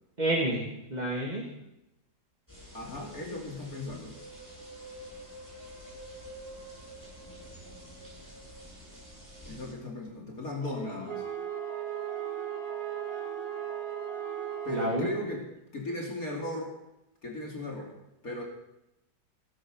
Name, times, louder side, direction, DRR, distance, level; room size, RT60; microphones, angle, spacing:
voice 1, 0.2-0.6 0.9-1.5 14.7-15.1, right 1 dB, 25° right, -2 dB, 2.6 m, -29 dB
sound 1, 2.5-9.7, right 1 dB, 10° left, 8.1 m, -47 dB
voice 2, 2.7-4.2 9.5-11.2 14.6-15.4 15.7-16.7 17.2-17.9 18.2-18.4, left 1 dB, 50° left, -1 dB, 3.3 m, -36 dB
sound 2, 10.6-15.0, left 3 dB, 80° left, 4.3 m, -45 dB
Wind instrument woodwind instrument, 11.1-15.3, right 14 dB, 65° right, 1.4 m, -37 dB
18.5 x 12.0 x 6.4 m, 0.89 s
omnidirectional pair, 1.9 m